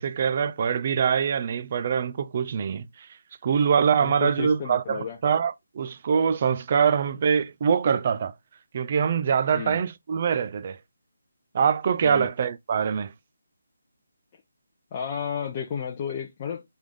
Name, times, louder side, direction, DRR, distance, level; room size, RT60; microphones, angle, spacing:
voice 1, 0.0-3.1 3.4-8.3 8.7-10.8 11.5-13.1, right 7 dB, 40° right, 0.4 m, -24 dB
voice 2, 4.0-5.2 9.5-9.8 12.0-12.3 14.9-16.7, left 7 dB, 30° left, 0.6 m, -32 dB
3.7 x 3.5 x 3.5 m
figure-of-eight pair, 160°, 0 cm